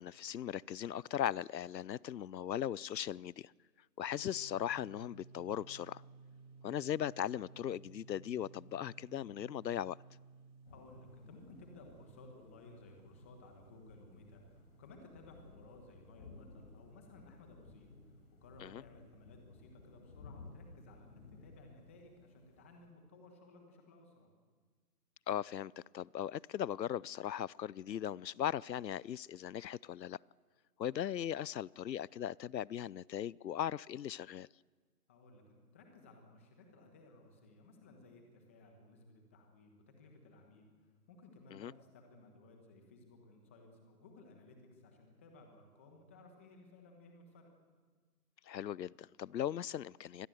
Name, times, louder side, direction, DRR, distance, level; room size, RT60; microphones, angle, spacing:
voice 1, 0.0-3.5 4.0-6.0 6.6-10.0 18.6-18.8 25.3-30.2 30.8-34.5 41.5-41.7 48.5-50.3, left 10 dB, 90° left, 0.6 m, -38 dB
sound 1, 4.0-17.5, right 4 dB, 40° right, 3.1 m, -59 dB
sound 2, 10.6-22.9, left 3 dB, 35° left, 5.2 m, -58 dB
voice 2, 10.7-24.3 35.1-40.7 41.1-47.5, left 2 dB, 10° left, 1.2 m, -58 dB
25.0 x 19.5 x 7.7 m
hypercardioid pair, 165°, 49 cm